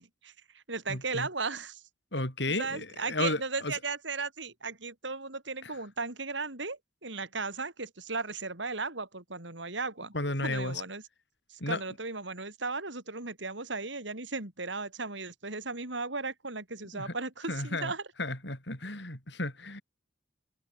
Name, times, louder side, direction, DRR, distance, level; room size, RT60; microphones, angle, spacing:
voice 1, 0.0-1.8 2.5-10.1 10.4-11.0 11.5-18.0, right 4 dB, 75° right, 4.2 m, -36 dB
voice 2, 0.9-1.3 2.1-3.8 5.6-5.8 10.1-10.8 11.6-11.8 16.9-17.2 17.5-17.9 18.2-19.8, left 2 dB, 65° left, 7.9 m, -33 dB
head